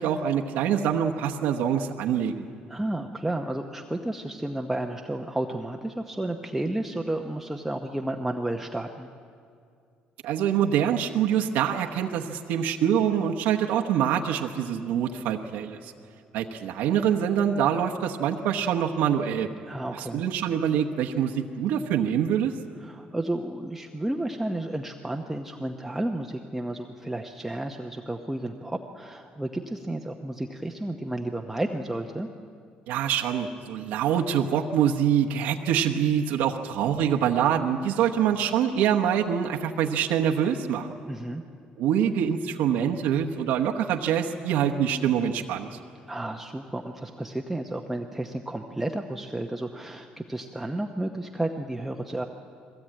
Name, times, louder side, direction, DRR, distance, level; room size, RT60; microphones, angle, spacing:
voice 1, 0.0-2.4 10.2-15.9 16.3-19.5 20.1-22.5 32.9-40.9 41.8-45.7, right 9 dB, 85° right, 2 dB, 1.1 m, -25 dB
voice 2, 2.7-9.1 19.6-20.2 22.8-32.3 41.1-41.4 46.1-52.2, right 1 dB, 5° right, 2 dB, 0.9 m, -32 dB
21.5 x 17.0 x 8.8 m, 2.3 s
cardioid pair, 125°, 3 cm